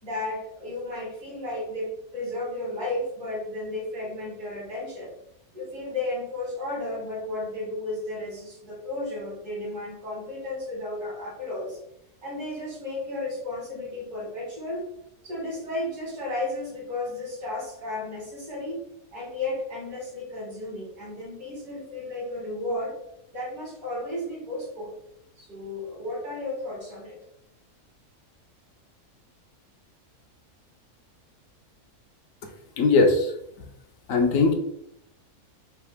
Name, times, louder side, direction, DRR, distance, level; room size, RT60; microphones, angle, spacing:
voice 1, 0.0-5.1 5.5-11.8 12.2-14.8 15.2-18.8 19.1-22.9 23.3-25.0 25.4-27.2, left 2 dB, 80° right, -3 dB, 2.6 m, -33 dB
voice 2, 32.8-33.3 34.1-34.5, left 3 dB, 65° left, 4 dB, 1.0 m, -19 dB
4.7 x 2.8 x 3.4 m, 0.74 s
omnidirectional pair, 1.6 m